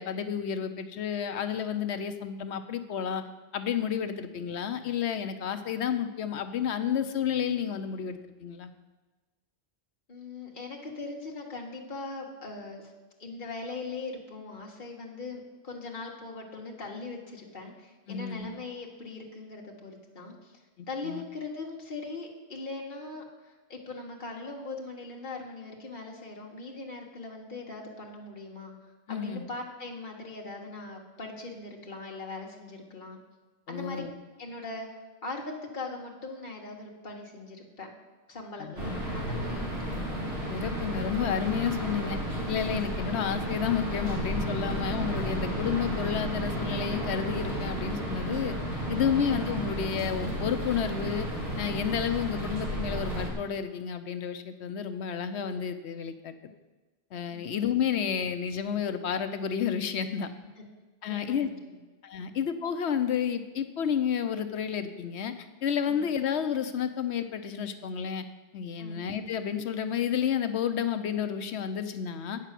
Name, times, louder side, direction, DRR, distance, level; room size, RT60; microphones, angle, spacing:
voice 1, 0.0-3.2 3.5-8.7 18.1-18.5 20.8-21.2 29.1-29.4 33.7-34.1 38.6-38.7 40.5-42.2 42.5-48.5 48.9-51.3 51.6-56.3 57.1-60.3 61.0-61.5 62.0-68.2 68.5-72.4, left 8 dB, 75° left, 9 dB, 1.0 m, -31 dB
voice 2, 10.1-12.9 13.2-20.6 20.9-28.7 29.1-33.2 33.7-34.0 34.4-34.9 35.2-37.9 38.3-40.0 44.7-44.9 57.3-57.6 60.6-60.7 61.1-61.8 62.2-62.3 65.9-66.0 68.8-69.0, left 3 dB, 45° left, -1 dB, 1.7 m, -40 dB
sound 1, 38.8-53.3, right 1 dB, 65° right, 2.4 m, -32 dB
9.0 x 6.3 x 7.4 m, 1.3 s
omnidirectional pair, 1.1 m